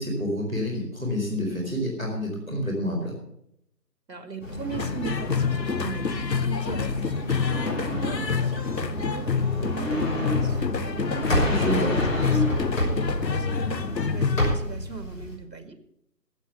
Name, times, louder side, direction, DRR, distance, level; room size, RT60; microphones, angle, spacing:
voice 1, 0.0-3.1 11.5-11.9, equal, ahead, -13 dB, 1.2 m, -28 dB
voice 2, 4.1-15.8, right 5 dB, 80° right, 8 dB, 2.2 m, -40 dB
sound 1, 4.4-15.4, equal, 50° left, 5.6 m, -29 dB
sound 2, 4.7-14.6, left 6 dB, 85° left, 1.0 m, -27 dB
13.5 x 8.3 x 7.0 m, 0.75 s
figure-of-eight pair, 160°, 49 cm